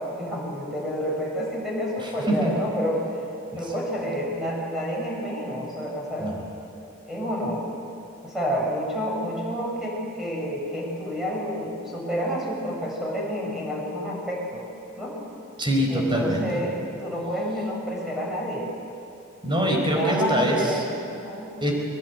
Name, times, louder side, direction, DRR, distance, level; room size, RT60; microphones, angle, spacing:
voice 1, 0.0-3.2 3.6-6.3 7.1-7.6 8.2-14.6 15.0-15.2 15.9-18.7 19.9-21.5, equal, ahead, -3 dB, 7.2 m, -29 dB
voice 2, 2.0-2.5 6.2-6.3 15.6-16.6 19.4-20.8 21.6-21.7, right 1 dB, 20° right, 1 dB, 4.9 m, -24 dB
23.0 x 22.5 x 9.6 m, 2.7 s
head